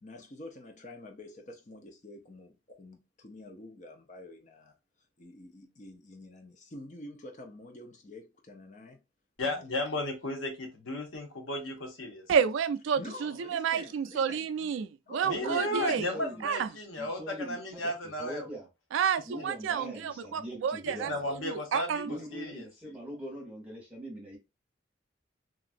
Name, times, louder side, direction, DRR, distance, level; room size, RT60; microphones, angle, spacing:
voice 1, 0.0-4.7 5.2-9.0 9.4-9.6 13.0-14.7 15.1-15.5, left 2 dB, 40° left, 0.6 m, -48 dB
voice 2, 9.4-12.2 15.2-18.6 19.4-19.5 20.9-22.7, left 1 dB, 85° left, 1.0 m, -35 dB
voice 3, 12.3-16.1 16.4-16.7 18.9-21.1 21.4-22.1, right 7 dB, 80° right, 0.3 m, -30 dB
voice 4, 15.4-16.5 17.0-18.7 19.2-21.4 22.0-24.4, equal, 10° right, 1.1 m, -42 dB
3.0 x 2.5 x 2.4 m
head